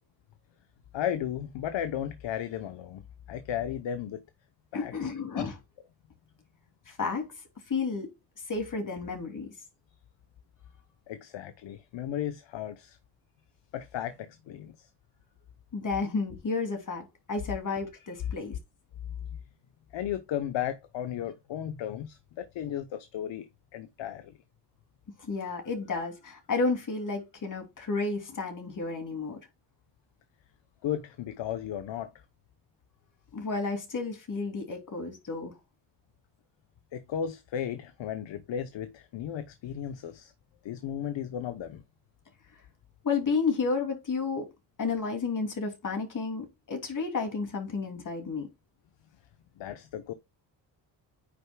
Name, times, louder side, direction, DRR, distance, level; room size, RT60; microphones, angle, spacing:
voice 1, 0.9-3.0 3.3-4.2 4.7-5.1 5.3-5.4 11.1-13.0 13.7-14.9 19.9-24.3 30.8-32.1 36.9-40.3 40.6-41.8 49.6-50.1, left 10 dB, 75° left, 0.9 m, -35 dB
voice 2, 4.7-5.5 6.9-7.3 7.7-8.1 8.5-9.5 15.7-18.6 25.2-29.4 33.3-35.6 43.0-44.5 44.8-48.5, left 4 dB, 45° left, 2.9 m, -31 dB
9.4 x 6.7 x 2.3 m
cardioid pair, 120°, 44 cm